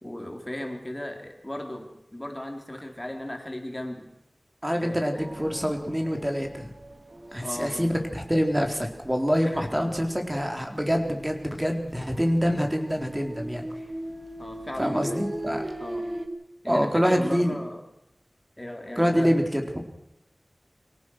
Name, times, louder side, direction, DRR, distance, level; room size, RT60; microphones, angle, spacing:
voice 1, 0.0-4.1 4.8-5.5 7.4-8.0 9.4-9.7 14.4-15.2 15.8-16.1 16.6-17.8 18.6-19.4, left 1 dB, 20° left, 3 dB, 4.0 m, -36 dB
voice 2, 4.6-6.7 7.3-13.6 14.8-15.6 16.7-17.6 19.0-19.6, equal, 15° right, 3 dB, 4.0 m, -26 dB
sound 1, 5.1-9.1 9.4-10.0 10.4-10.5 10.8-16.3, right 1 dB, 35° right, 2.2 m, -38 dB
24.5 x 17.5 x 6.4 m, 0.86 s
wide cardioid pair, 45°, 0 cm